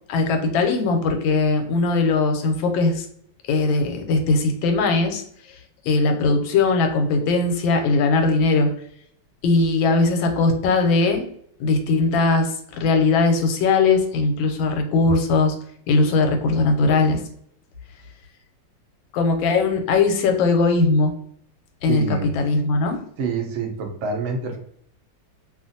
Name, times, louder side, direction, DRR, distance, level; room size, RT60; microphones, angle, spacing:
voice 1, 0.1-3.1 3.5-5.2 5.8-8.7 9.4-11.2 11.6-15.6 15.9-17.2 19.1-21.1 21.8-23.0, left 3 dB, 85° left, 5 dB, 1.3 m, -19 dB
voice 2, 21.9-22.3 23.2-24.6, right 4 dB, 90° right, 2 dB, 0.6 m, -26 dB
2.8 x 2.5 x 2.5 m, 0.65 s
omnidirectional pair, 2.1 m